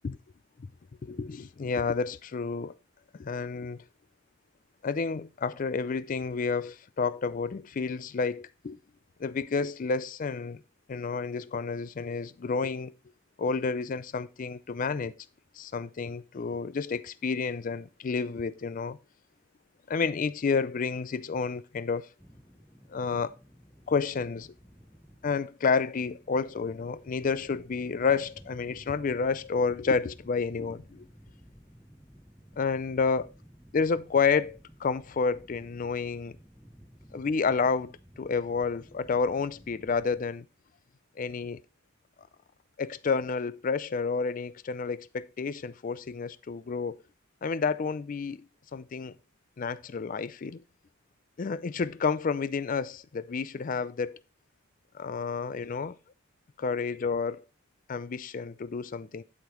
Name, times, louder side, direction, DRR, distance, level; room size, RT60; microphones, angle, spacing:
voice 1, 1.0-2.7 3.2-3.8 4.8-8.8 9.2-10.6 10.9-12.9 13.4-15.1 15.6-19.0 19.9-22.1 22.9-23.3 23.9-24.5 25.2-31.0 32.6-33.3 33.7-36.4 37.1-40.5 41.2-41.6 42.8-47.0 47.4-48.4 48.7-49.1 49.6-50.6 51.4-54.2 54.9-55.9 56.6-57.4 57.9-59.2, left 5 dB, 40° left, 0.4 m, -30 dB
sound 1, 22.2-40.3, equal, ahead, 0.7 m, -55 dB
11.5 x 5.0 x 3.0 m
head